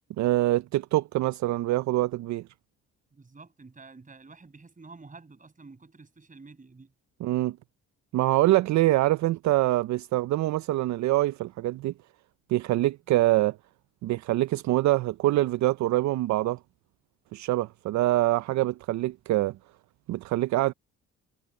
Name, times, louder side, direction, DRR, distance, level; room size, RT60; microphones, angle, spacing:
voice 1, 0.2-2.5 7.2-7.6 8.1-11.9 12.5-13.6 14.0-16.6 17.3-19.6 20.1-20.7, right 16 dB, 65° right, 0.5 m, -25 dB
voice 2, 3.1-6.9, right 3 dB, 25° right, 6.0 m, -49 dB
cardioid pair, 90°, 30 cm